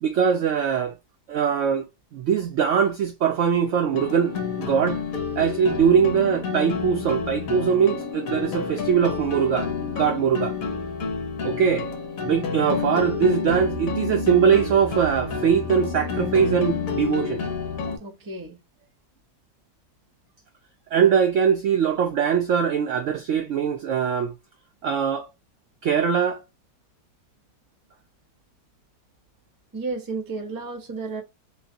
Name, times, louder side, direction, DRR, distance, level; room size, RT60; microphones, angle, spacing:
voice 1, 0.0-0.9 1.3-1.9 2.1-5.0 5.4-10.5 11.4-11.9 12.2-17.4 20.9-24.3 24.8-25.3 25.8-26.4, right 7 dB, 80° right, 0.6 m, -22 dB
sound 1, 3.9-18.0, left 5 dB, 55° left, 1.3 m, -29 dB
voice 2, 18.0-18.6 29.7-31.2, right 3 dB, 20° right, 0.5 m, -32 dB
3.8 x 2.5 x 2.6 m
omnidirectional pair, 1.9 m